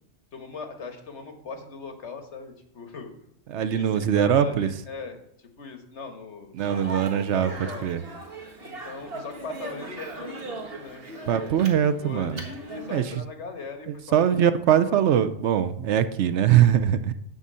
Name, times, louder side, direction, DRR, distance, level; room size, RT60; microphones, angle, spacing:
voice 1, 0.3-3.1 3.7-5.2 5.6-7.9 8.6-11.7 12.0-14.6 14.8-15.0, left 4 dB, 75° left, 6 dB, 1.6 m, -39 dB
voice 2, 3.5-4.7 6.6-7.5 7.8-8.0 11.3-12.4 12.9-13.0 14.1-17.1, right 9 dB, 75° right, 12 dB, 1.0 m, -21 dB
Speech, 6.6-13.0, right 2 dB, 55° right, 1.8 m, -39 dB
11.0 x 4.1 x 7.5 m, 0.76 s
omnidirectional pair, 1.2 m